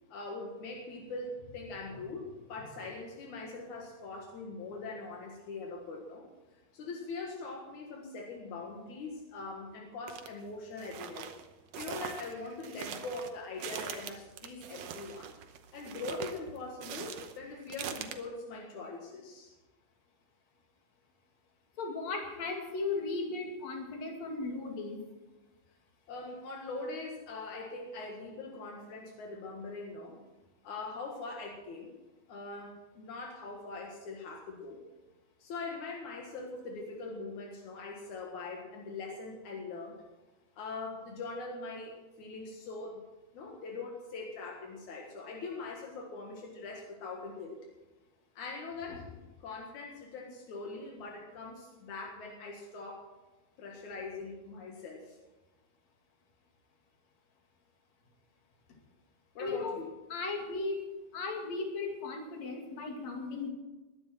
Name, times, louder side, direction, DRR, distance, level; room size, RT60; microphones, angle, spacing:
voice 1, 0.1-6.3 6.7-11.3 11.8-15.3 15.7-19.5 26.1-30.2 30.6-31.9 32.3-34.8 35.4-40.0 40.6-43.0 43.3-47.6 48.4-49.1 49.4-53.1 53.6-55.2 59.3-59.9, left 3 dB, 85° left, 0 dB, 3.1 m, -42 dB
sound 1, 10.1-10.3 10.8-18.2, right 8 dB, 70° right, 1.9 m, -43 dB
voice 2, 21.8-25.0 48.9-49.0 59.4-59.8 60.1-60.9 61.1-63.5, left 3 dB, 65° left, 1 dB, 3.6 m, -36 dB
21.0 x 11.0 x 4.5 m, 1.1 s
omnidirectional pair, 3.3 m